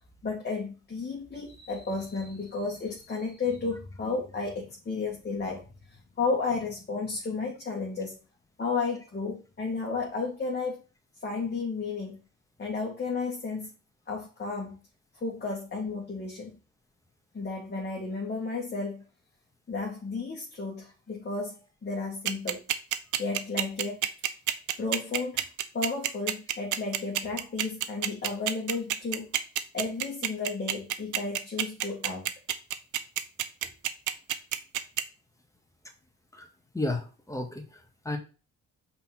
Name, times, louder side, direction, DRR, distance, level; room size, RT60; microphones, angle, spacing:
voice 1, 0.2-5.6 5.9-8.2 8.6-10.8 11.2-12.2 12.6-13.7 14.1-14.8 15.2-16.6 17.3-19.0 19.7-22.7 23.2-24.0 24.8-25.5 25.7-29.3 29.7-32.3, left 4 dB, 35° left, -2 dB, 1.9 m, -33 dB
sound 1, 22.3-35.0, right 12 dB, 80° right, 0.8 m, -27 dB
voice 2, 36.7-38.2, left 2 dB, 10° left, 3 dB, 1.9 m, -33 dB
5.4 x 4.4 x 6.0 m, 0.34 s
cardioid pair, 90°, 30 cm